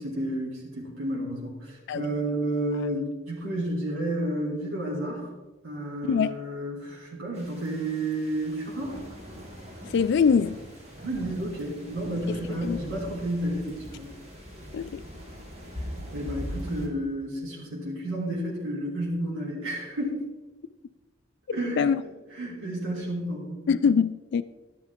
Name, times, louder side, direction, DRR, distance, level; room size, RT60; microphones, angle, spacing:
voice 1, 0.0-5.3 5.6-8.9 11.0-14.1 16.1-20.3 21.5-21.9 22.3-23.7, right 1 dB, 85° right, 3.6 m, -31 dB
voice 2, 6.0-6.3 9.8-10.6 12.6-12.8 14.7-15.0 21.8-22.0 23.7-24.4, left 6 dB, 60° left, 0.3 m, -23 dB
sound 1, 7.3-16.9, equal, 35° right, 2.1 m, -41 dB
12.5 x 10.5 x 3.7 m
head